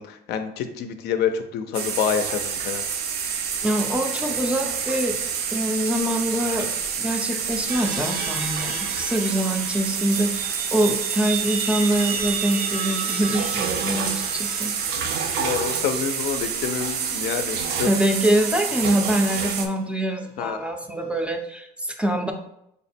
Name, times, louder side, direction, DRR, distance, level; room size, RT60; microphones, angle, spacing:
voice 1, 0.0-2.8 15.4-17.9 20.4-20.6, left 8 dB, 75° left, 7 dB, 0.4 m, -27 dB
sound 1, 1.7-19.7, right 6 dB, 70° right, 0.5 m, -28 dB
voice 2, 3.6-5.2 5.5-6.7 7.0-14.7 17.8-22.3, right 1 dB, 5° right, 4 dB, 0.4 m, -24 dB
sound 2, 7.7-20.2, right 5 dB, 90° right, 0.8 m, -35 dB
3.4 x 2.1 x 4.2 m, 0.79 s
cardioid pair, 110°, 17 cm